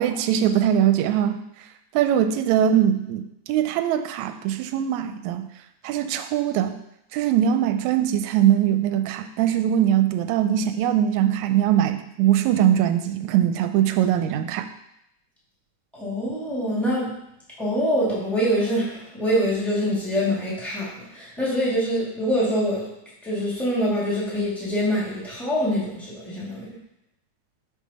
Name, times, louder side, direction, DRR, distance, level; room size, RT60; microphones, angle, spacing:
voice 1, 0.0-1.4 1.9-5.4 5.8-6.8 7.1-14.7, right 10 dB, 80° right, 8 dB, 1.8 m, -21 dB
voice 2, 15.9-17.2 17.6-22.9 23.2-26.7, equal, ahead, -7 dB, 1.4 m, -25 dB
6.1 x 5.5 x 4.1 m, 0.79 s
omnidirectional pair, 3.4 m